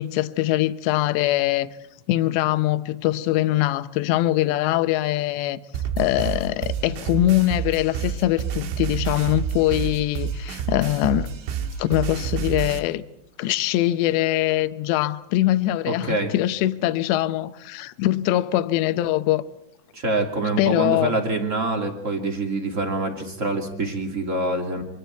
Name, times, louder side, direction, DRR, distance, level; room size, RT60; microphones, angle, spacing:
voice 1, 0.0-1.7 2.1-5.6 6.0-11.3 11.8-13.0 13.4-19.4 20.6-21.1, left 15 dB, 75° left, 2.8 m, -22 dB
sound 1, 5.7-12.8, right 8 dB, 80° right, 4.1 m, -29 dB
voice 2, 15.8-16.3 19.9-24.8, right 2 dB, 25° right, 1.6 m, -25 dB
27.5 x 25.0 x 4.5 m
omnidirectional pair, 5.6 m